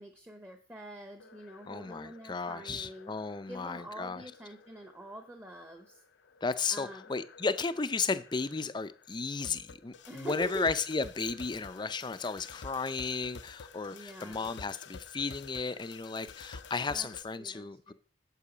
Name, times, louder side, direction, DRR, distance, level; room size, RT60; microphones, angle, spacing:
voice 1, 0.0-3.1 3.5-6.0 6.7-7.1 10.1-10.7 13.9-14.5 16.9-17.1 17.4-17.9, right 1 dB, 10° right, 0.8 m, -45 dB
sound 1, 1.2-17.2, left 5 dB, 70° left, 0.6 m, -51 dB
voice 2, 1.7-4.2 6.4-17.9, left 4 dB, 25° left, 0.5 m, -34 dB
8.4 x 7.7 x 5.0 m
head